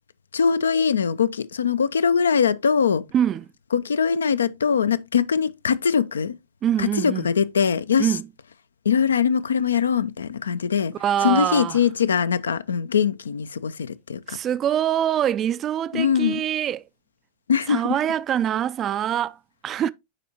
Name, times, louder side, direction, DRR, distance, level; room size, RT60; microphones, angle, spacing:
voice 1, 0.3-3.0 3.7-6.3 6.8-8.1 8.9-10.9 11.2-14.4 15.9-16.4 17.5-17.8, left 7 dB, 70° left, 0.4 m, -22 dB
voice 2, 3.1-3.5 6.6-7.3 8.0-8.3 11.0-11.8 14.3-16.8 17.7-19.4 19.6-19.9, right 10 dB, 30° right, 0.3 m, -24 dB
9.9 x 4.2 x 2.8 m
figure-of-eight pair, 90°, 0 cm